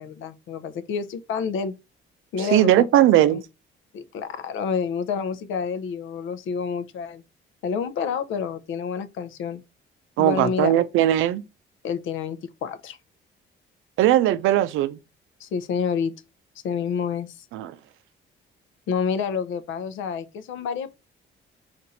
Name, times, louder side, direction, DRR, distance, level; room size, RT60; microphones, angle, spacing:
voice 1, 0.0-1.7 2.3-2.9 3.2-3.4 3.9-7.2 7.6-9.6 10.2-10.7 11.8-13.0 15.4-16.1 16.6-17.4 18.9-21.0, left 6 dB, 80° left, 0.6 m, -28 dB
voice 2, 2.4-3.4 10.2-11.4 14.0-15.0 17.5-17.7, right 13 dB, 85° right, 0.5 m, -19 dB
4.2 x 2.6 x 4.0 m
cardioid pair, 90°, 20 cm